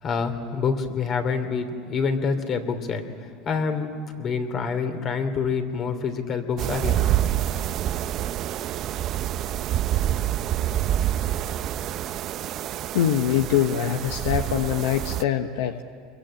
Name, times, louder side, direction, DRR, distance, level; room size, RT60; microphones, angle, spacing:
voice 1, 0.0-3.9 4.2-7.1, left 5 dB, 40° left, 8 dB, 2.9 m, -27 dB
sound 1, 6.6-15.2, right 12 dB, 45° right, 0.6 m, -27 dB
voice 2, 12.9-15.8, left 10 dB, 85° left, 7 dB, 1.1 m, -23 dB
26.5 x 22.5 x 8.9 m, 2.4 s
supercardioid pair, 115°, 0 cm